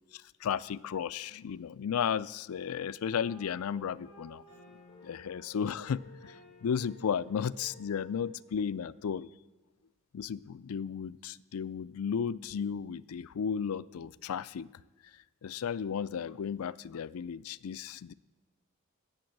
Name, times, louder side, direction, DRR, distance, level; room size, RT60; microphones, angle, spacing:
voice 1, 0.1-4.4 5.0-9.3 10.1-14.7 15.4-18.1, left 7 dB, 85° left, 18 dB, 0.4 m, -34 dB
sound 1, 3.1-8.4, left 2 dB, 30° left, 6.0 m, -55 dB
17.5 x 7.0 x 7.9 m, 1.2 s
head